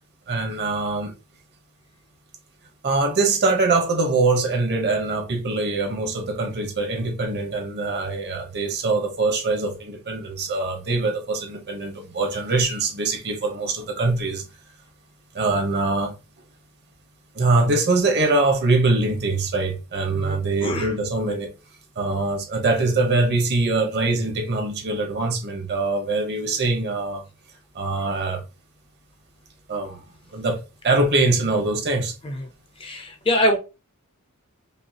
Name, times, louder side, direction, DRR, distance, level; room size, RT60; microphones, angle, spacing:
voice 1, 0.3-1.1 2.8-14.4 15.3-16.2 17.3-21.5 22.0-27.2 27.7-28.4 29.7-30.0 30.3-30.6 30.8-32.1, right 3 dB, 50° right, 1.1 m, -23 dB
voice 2, 20.1-20.9 32.2-32.5 32.8-33.6, left 1 dB, 25° left, 0.6 m, -24 dB
5.2 x 2.4 x 2.8 m
head